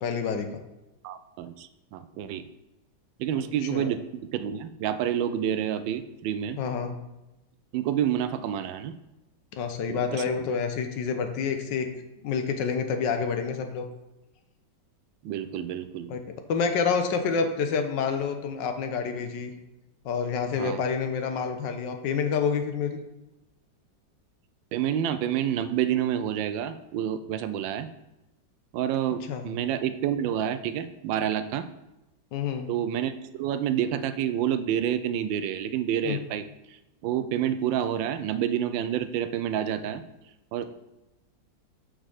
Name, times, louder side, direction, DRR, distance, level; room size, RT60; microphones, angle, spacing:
voice 1, 0.0-0.6 3.3-3.4 3.7-3.9 6.6-6.9 9.5-11.9 12.2-13.9 16.1-16.2 16.5-19.5 20.0-23.0 29.3-29.5 32.3-32.7 36.0-36.2, left 6 dB, 75° left, 6 dB, 1.4 m, -28 dB
voice 2, 1.0-2.4 3.2-6.6 7.7-8.9 9.9-10.2 15.2-16.1 20.6-20.8 24.7-27.9 28.7-31.7 32.7-33.1 33.4-36.4 37.0-40.0 40.5-40.7, right 10 dB, 90° right, 12 dB, 1.3 m, -28 dB
6.5 x 3.8 x 6.3 m, 0.96 s
omnidirectional pair, 2.0 m